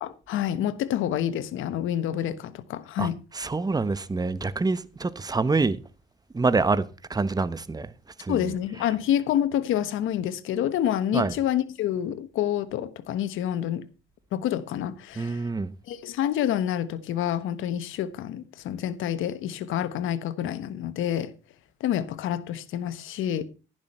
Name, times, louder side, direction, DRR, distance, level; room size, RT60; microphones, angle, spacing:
voice 1, 0.0-3.1 8.3-13.8 14.3-15.4 15.9-21.3 21.8-23.4, left 10 dB, 85° left, 1.2 m, -28 dB
voice 2, 3.0-5.8 6.3-7.9 8.2-8.5 11.1-11.3 15.2-15.7, right 3 dB, 20° right, 1.0 m, -26 dB
11.5 x 11.0 x 4.3 m
cardioid pair, 90°, 20 cm